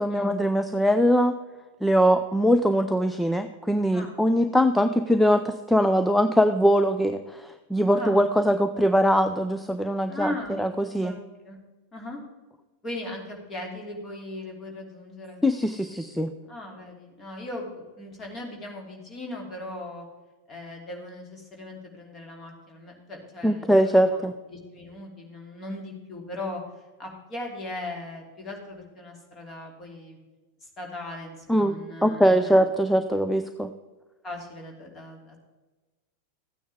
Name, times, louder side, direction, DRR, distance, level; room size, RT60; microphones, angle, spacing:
voice 1, 0.0-1.3 1.8-10.3 10.6-11.1 15.4-16.3 23.4-24.3 31.5-33.7, equal, ahead, 9 dB, 0.5 m, -22 dB
voice 2, 10.1-10.5 11.0-11.2 11.4-11.6 11.9-12.2 12.8-15.4 16.5-20.0 20.5-26.6 27.0-30.2 30.6-32.6 34.2-35.4, left 1 dB, 25° left, 1 dB, 2.8 m, -38 dB
14.0 x 9.3 x 3.5 m, 1.2 s
figure-of-eight pair, 90°, 0 cm